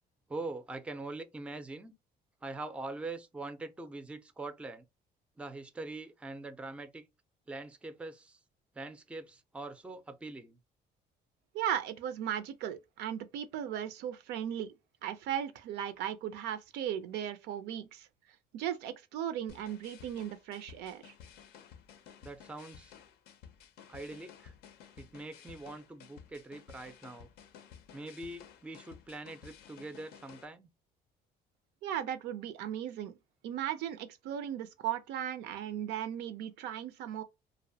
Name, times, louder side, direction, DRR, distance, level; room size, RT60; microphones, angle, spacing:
voice 1, 0.3-1.9 2.4-4.8 5.4-7.1 7.5-8.4 8.8-10.6 22.2-22.9 23.9-24.5 25.0-27.3 27.9-30.7, right 2 dB, 5° right, 0.3 m, -43 dB
voice 2, 11.5-14.7 15.0-18.1 18.5-21.1 31.8-33.1 33.4-37.2, right 10 dB, 85° right, 0.4 m, -37 dB
sound 1, 19.5-30.4, left 8 dB, 75° left, 0.5 m, -54 dB
2.5 x 2.0 x 2.6 m
cardioid pair, 110°, 17 cm